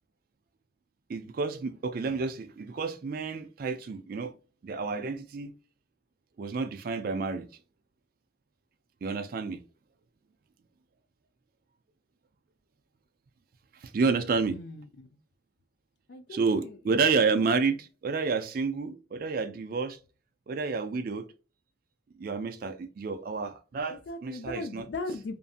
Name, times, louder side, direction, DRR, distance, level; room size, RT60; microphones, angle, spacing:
voice 1, 1.1-4.3 4.6-5.5 6.4-7.5 9.0-9.6 13.8-14.6 16.3-20.0 20.5-21.3 22.2-24.9, right 4 dB, 50° right, 0.3 m, -30 dB
voice 2, 14.5-15.1 16.1-16.7 24.1-25.4, left 3 dB, 65° left, 0.4 m, -38 dB
2.6 x 2.5 x 2.3 m
head